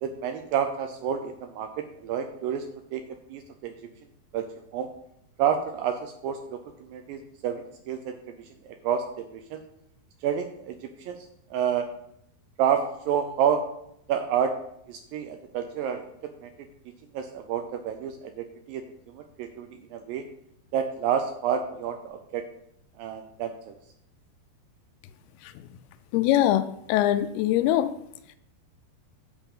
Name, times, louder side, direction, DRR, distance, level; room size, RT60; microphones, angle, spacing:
voice 1, 0.0-1.7 2.0-2.6 2.9-3.0 3.3-3.7 4.3-4.4 4.7-4.9 5.4-8.1 8.8-9.6 10.2-11.2 11.5-11.9 12.6-12.8 13.1-13.6 14.1-14.5 14.9-16.0 16.4-16.5 17.1-18.8 19.1-20.2 20.7-22.4 23.0-23.7, right 8 dB, 80° right, 7 dB, 2.1 m, -29 dB
voice 2, 26.1-27.9, left 12 dB, 85° left, 11 dB, 2.5 m, -23 dB
9.0 x 4.6 x 7.3 m, 0.74 s
omnidirectional pair, 4.6 m